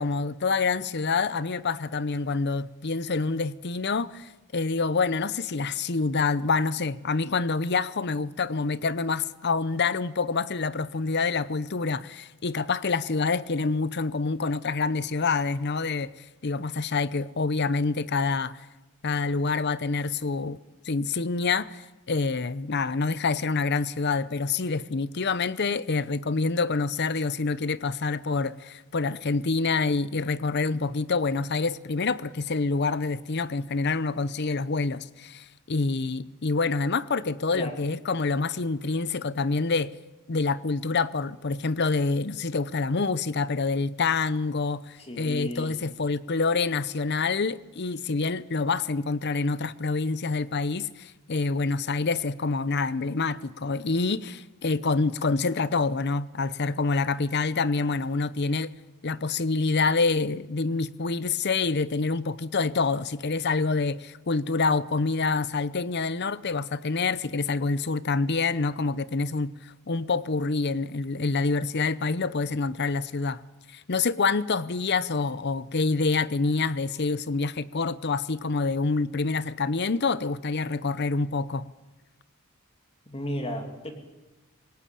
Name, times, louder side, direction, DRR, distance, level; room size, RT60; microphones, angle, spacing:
voice 1, 0.0-16.1 16.4-18.7 19.0-20.6 20.8-39.9 40.3-58.7 59.0-73.4 73.7-81.7, left 4 dB, 50° left, 0.7 m, -27 dB
voice 2, 45.0-45.7 83.1-83.9, equal, 25° left, 2.8 m, -34 dB
26.0 x 18.0 x 8.5 m
head